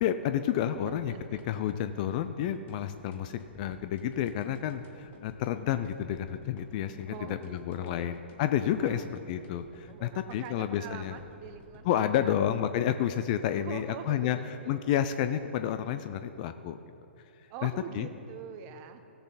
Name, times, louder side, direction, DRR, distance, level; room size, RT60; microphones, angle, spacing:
voice 1, 0.0-1.1 1.4-11.2 11.9-14.4 14.7-16.8 17.6-18.1, left 10 dB, 40° left, 10 dB, 0.4 m, -30 dB
sound 1, 0.8-13.6, left 2 dB, 25° left, 1.3 m, -56 dB
voice 2, 0.8-1.4 7.1-8.2 8.8-9.1 9.9-11.9 12.2-12.3 13.6-14.8 17.5-19.1, right 8 dB, 35° right, 9 dB, 0.8 m, -44 dB
16.0 x 6.8 x 4.1 m, 2.7 s
figure-of-eight pair, 120°, 7 cm